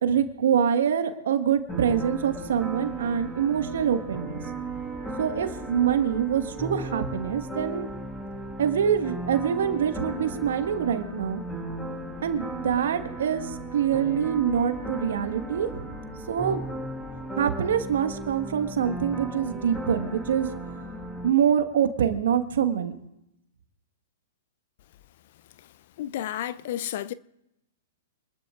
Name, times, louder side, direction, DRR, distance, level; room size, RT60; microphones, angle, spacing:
voice 1, 0.0-4.4 5.2-7.9 8.6-11.4 12.2-15.9 16.3-16.6 17.4-20.5 21.2-22.9, right 8 dB, 65° right, 1.6 m, -25 dB
sound 1, 1.7-21.3, right 2 dB, 10° left, 5.1 m, -36 dB
voice 2, 26.0-27.1, left 12 dB, 55° left, 0.5 m, -31 dB
27.0 x 20.5 x 2.5 m
figure-of-eight pair, 110°, 0 cm